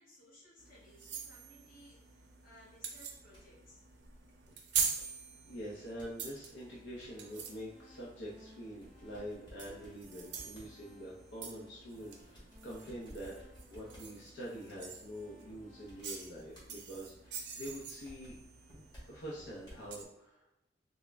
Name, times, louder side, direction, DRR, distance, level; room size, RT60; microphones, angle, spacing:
voice 1, 0.0-3.8, equal, 50° left, -4 dB, 1.1 m, -60 dB
sound 1, 0.6-20.0, right 6 dB, 70° right, 0.5 m, -44 dB
sound 2, 2.9-19.9, equal, 25° left, 1.2 m, -60 dB
voice 2, 4.7-5.1 5.4-13.4 13.7-18.7 19.1-20.5, equal, 75° left, -5 dB, 0.6 m, -46 dB
sound 3, 6.7-16.0, equal, ahead, 0.5 m, -61 dB
3.5 x 2.0 x 3.3 m, 0.93 s
head